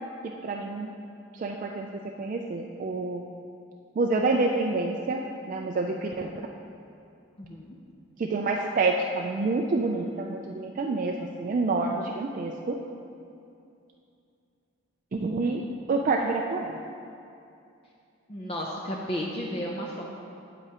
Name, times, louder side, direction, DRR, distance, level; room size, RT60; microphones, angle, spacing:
voice 1, 0.4-0.9 1.3-1.9 2.2-3.2 4.0-5.2 5.5-6.3 8.2-12.8 15.1-15.6 15.9-16.7, right 3 dB, 40° right, 1 dB, 0.3 m, -27 dB
voice 2, 7.4-7.8 18.3-20.0, equal, 30° left, -2 dB, 0.5 m, -33 dB
8.5 x 7.9 x 2.9 m, 2.6 s
head